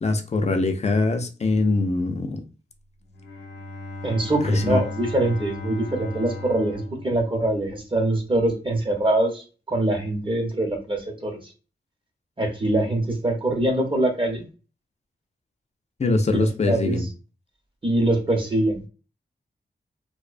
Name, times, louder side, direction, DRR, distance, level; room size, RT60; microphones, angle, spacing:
voice 1, 0.0-2.4 4.4-4.8 16.0-17.0, left 3 dB, 35° left, 0.4 m, -22 dB
Bowed string instrument, 3.0-8.0, left 2 dB, 90° left, 0.7 m, -37 dB
voice 2, 4.0-11.4 12.4-14.4 16.3-17.1 17.8-18.9, right 1 dB, 25° right, 0.7 m, -24 dB
2.4 x 2.1 x 2.4 m
wide cardioid pair, 125°, 19 cm